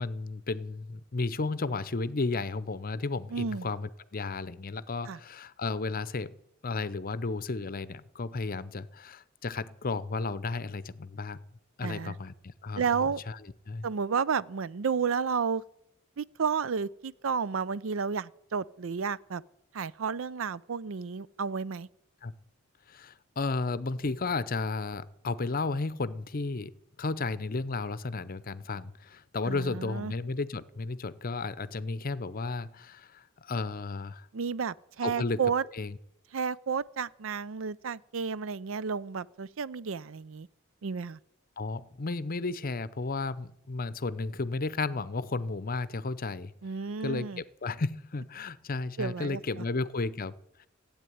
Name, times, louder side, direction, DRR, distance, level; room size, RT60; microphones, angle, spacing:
voice 1, 0.0-6.3 6.6-11.4 11.8-13.4 13.7-13.9 22.2-22.3 22.9-26.7 27.0-34.3 35.0-35.4 35.7-36.0 41.6-46.5 47.0-50.7, left 3 dB, 45° left, 0.7 m, -33 dB
voice 2, 3.3-3.7 5.1-5.2 11.8-12.1 12.8-13.2 13.8-15.6 16.2-19.4 19.7-21.9 29.5-30.1 34.3-35.6 36.3-40.5 40.8-41.2 46.6-47.4 49.0-49.6, right 6 dB, 70° right, 0.5 m, -32 dB
15.5 x 8.9 x 9.3 m
head